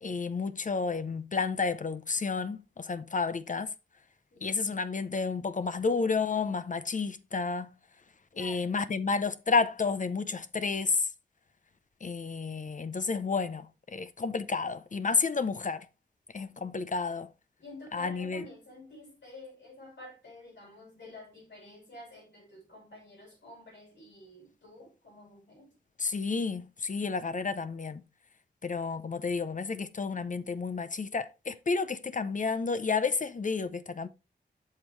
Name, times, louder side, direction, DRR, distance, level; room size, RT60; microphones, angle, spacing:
voice 1, 0.0-3.7 4.4-7.7 8.4-11.0 12.0-13.7 13.9-15.9 16.3-17.3 17.9-18.4 26.0-28.0 28.6-34.1, left 4 dB, 45° left, 0.6 m, -31 dB
voice 2, 4.3-4.6 8.3-8.8 17.6-25.7, left 1 dB, 80° left, 4.9 m, -50 dB
8.0 x 5.6 x 3.1 m
cardioid pair, 55°, 18 cm